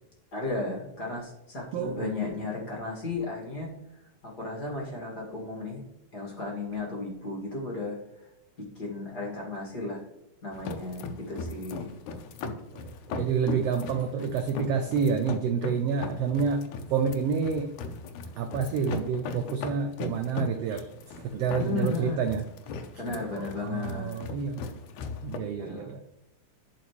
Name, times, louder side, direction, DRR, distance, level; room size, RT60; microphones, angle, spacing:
voice 1, 0.3-3.7 4.2-5.9 6.1-8.3 8.6-10.0 10.4-11.9 14.7-14.9 21.5-22.2 23.0-24.2 25.6-25.9, left 3 dB, 35° left, -3 dB, 2.2 m, -34 dB
voice 2, 1.7-2.4 12.4-17.8 18.4-20.9 21.2-22.4 23.3-24.6 25.2-26.0, right 6 dB, 80° right, 6 dB, 1.4 m, -29 dB
sound 1, 10.5-25.4, left 4 dB, 85° left, 2.2 m, -39 dB
11.5 x 4.9 x 3.0 m, 0.92 s
omnidirectional pair, 3.4 m